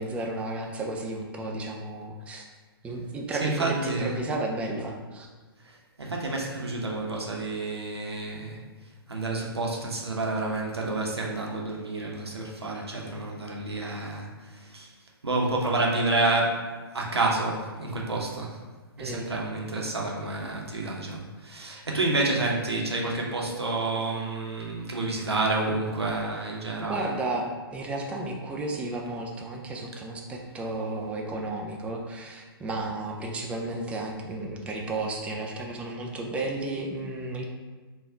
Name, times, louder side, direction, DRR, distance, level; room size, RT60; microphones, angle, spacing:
voice 1, 0.0-2.4 2.8-5.3 19.0-19.2 26.8-37.4, right 2 dB, 10° right, 0 dB, 0.3 m, -33 dB
voice 2, 3.4-4.2 5.6-8.6 9.1-14.9 15.2-18.6 19.0-27.1, right 2 dB, 85° right, -1 dB, 0.8 m, -29 dB
3.4 x 2.3 x 3.5 m, 1.3 s
figure-of-eight pair, 125°, 13 cm